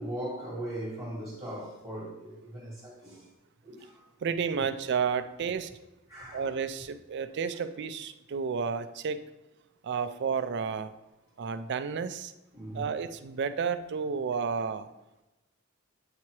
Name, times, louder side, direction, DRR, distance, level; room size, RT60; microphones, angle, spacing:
voice 1, 0.0-3.3 3.6-4.1 6.1-6.6 12.5-12.9, right 1 dB, 15° right, -6 dB, 1.5 m, -39 dB
voice 2, 4.2-5.7 6.3-9.2 9.8-10.9 11.4-12.3 12.7-14.9, right 6 dB, 55° right, 11 dB, 0.4 m, -31 dB
8.2 x 2.9 x 4.6 m, 1.0 s
head